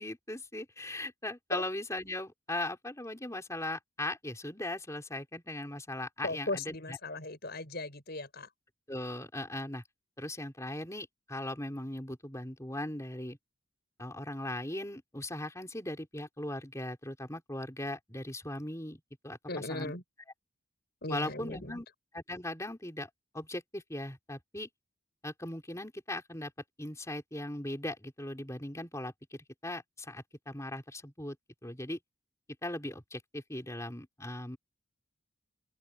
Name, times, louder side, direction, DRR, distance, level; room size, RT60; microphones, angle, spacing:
voice 1, 0.0-7.0 8.9-9.8 10.2-13.4 14.0-19.9 21.1-21.9 22.1-24.7 25.2-26.5 26.8-31.4 31.6-32.0 32.6-34.6, left 1 dB, 15° left, 4.3 m, -39 dB
voice 2, 6.2-8.5 19.5-20.0 21.0-21.8, left 2 dB, 45° left, 7.9 m, -37 dB
open air
head